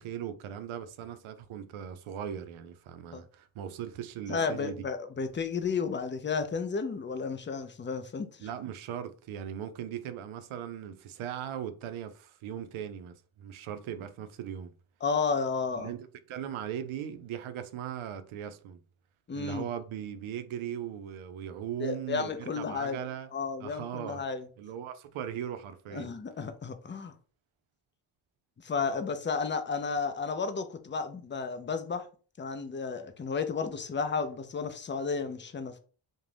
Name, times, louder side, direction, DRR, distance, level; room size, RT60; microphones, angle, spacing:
voice 1, 0.0-4.9 8.4-14.7 15.7-18.8 19.4-23.3 23.6-24.2 24.6-26.1, right 9 dB, 75° right, 0.5 m, -39 dB
voice 2, 4.3-8.5 15.0-15.9 19.3-19.7 21.8-23.0 23.3-24.5 25.9-27.1 28.6-32.0 32.4-35.8, left 5 dB, 25° left, 0.4 m, -32 dB
2.5 x 2.2 x 3.2 m
cardioid pair, 60°, 50 cm